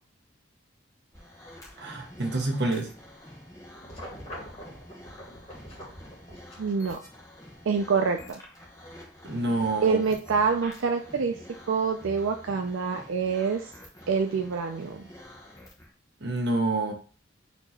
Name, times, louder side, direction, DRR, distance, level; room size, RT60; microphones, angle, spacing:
sound 1, 1.1-15.9, left 1 dB, 15° left, 0.9 m, -48 dB
voice 1, 1.8-2.9 9.2-10.0 16.2-16.9, right 2 dB, 55° right, 2 dB, 1.0 m, -27 dB
sound 2, 3.7-6.5, equal, 35° left, 1.8 m, -43 dB
voice 2, 6.6-7.0 7.7-8.4 9.8-11.4 11.7-13.7 14.1-15.0, right 5 dB, 80° right, 4 dB, 0.4 m, -26 dB
4.4 x 2.9 x 4.1 m, 0.40 s
head